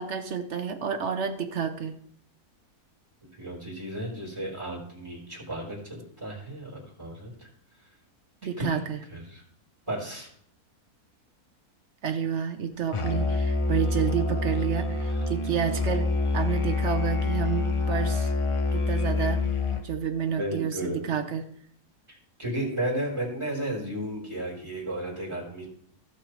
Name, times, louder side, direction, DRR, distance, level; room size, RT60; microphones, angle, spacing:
voice 1, 0.0-1.9 8.4-9.0 12.0-18.3 18.7-19.5 19.8-21.5, right 7 dB, 55° right, 9 dB, 1.1 m, -30 dB
voice 2, 3.4-7.5 8.6-8.8 9.1-9.4 9.9-10.3 15.1-15.2 20.3-21.1 22.1-25.7, right 1 dB, 20° right, -3 dB, 4.2 m, -34 dB
Musical instrument, 12.9-19.9, left 3 dB, 35° left, 0.5 m, -26 dB
17.5 x 6.1 x 3.3 m, 0.65 s
omnidirectional pair, 1.6 m